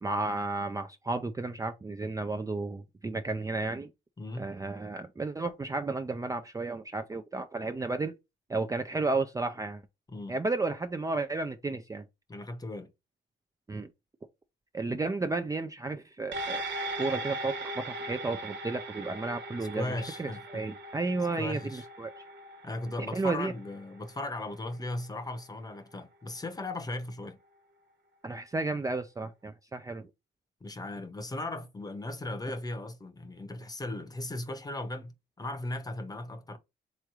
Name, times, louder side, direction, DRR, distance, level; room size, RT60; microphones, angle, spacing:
voice 1, 0.0-3.9 4.4-8.2 8.5-9.8 10.3-12.1 13.7-13.9 14.7-16.6 17.0-22.1 23.1-23.5 28.2-30.1, right 3 dB, 15° right, 0.5 m, -33 dB
voice 2, 4.2-4.5 10.1-10.4 12.3-12.9 19.7-20.6 21.4-21.8 22.6-27.4 30.6-36.6, left 2 dB, 20° left, 0.9 m, -37 dB
sound 1, 16.3-25.0 25.4-25.5, right 1 dB, 65° right, 1.3 m, -39 dB
3.5 x 3.1 x 4.7 m
cardioid pair, 90°, 20 cm